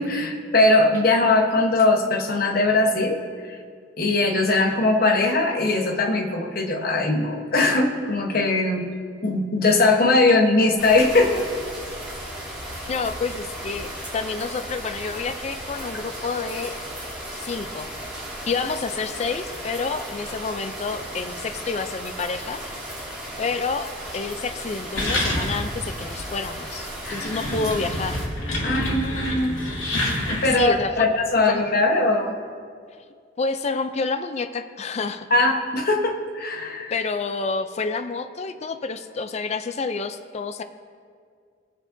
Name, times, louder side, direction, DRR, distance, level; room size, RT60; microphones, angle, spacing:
voice 1, 0.0-3.2 3.5-3.6 4.0-8.9 9.2-11.4 27.0-27.3 28.6-29.6 30.3-32.3 35.3-36.9, left 2 dB, 50° left, 3 dB, 1.0 m, -20 dB
sound 1, 10.8-28.2, right 1 dB, 5° right, 2.9 m, -35 dB
voice 2, 12.9-16.8 17.3-17.9 18.5-22.6 23.4-28.2 30.4-31.1 31.5-31.6 33.4-35.3 36.9-40.6, left 4 dB, 35° left, 9 dB, 0.4 m, -29 dB
sound 2, 24.9-25.8 26.2-26.3 26.9-30.7, left 1 dB, 90° left, 2.4 m, -27 dB
19.5 x 7.2 x 2.6 m, 2.1 s
head